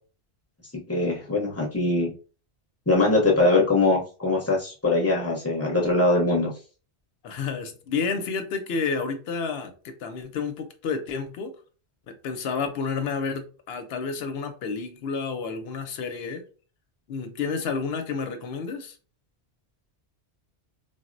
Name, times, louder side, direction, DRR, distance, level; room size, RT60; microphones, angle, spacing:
voice 1, 0.9-2.1 2.9-6.5, left 2 dB, 15° left, 0.6 m, -22 dB
voice 2, 7.2-11.5 12.1-16.4 17.1-19.0, left 5 dB, 70° left, 0.8 m, -30 dB
3.7 x 2.0 x 2.5 m
omnidirectional pair, 1.1 m